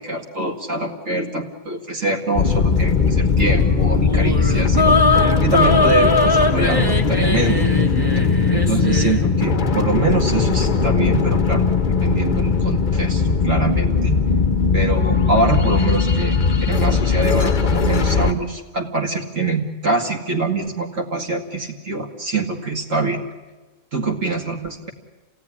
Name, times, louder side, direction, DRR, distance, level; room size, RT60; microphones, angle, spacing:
voice 1, 0.0-7.6 8.5-14.2 14.7-16.4 16.7-23.2 23.9-24.9, right 3 dB, 55° right, 1 dB, 2.4 m, -24 dB
sound 1, 2.4-18.3, left 5 dB, 35° left, 0.9 m, -19 dB
sound 2, 4.0-9.3, left 2 dB, 15° left, 1.3 m, -20 dB
28.0 x 17.0 x 9.9 m, 1.3 s
omnidirectional pair, 1.6 m